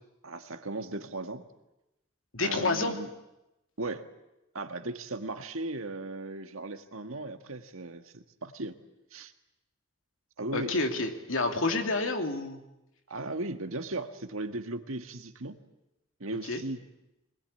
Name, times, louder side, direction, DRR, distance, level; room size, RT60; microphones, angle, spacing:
voice 1, 0.2-1.4 2.4-3.1 3.8-4.1 4.5-8.8 9.1-9.3 10.4-10.8 13.1-15.6 16.2-16.8, right 2 dB, 80° right, 7 dB, 1.8 m, -37 dB
voice 2, 2.3-3.0 10.5-12.6 16.5-16.6, left 3 dB, 75° left, 5 dB, 2.7 m, -29 dB
23.0 x 20.5 x 9.9 m, 0.95 s
head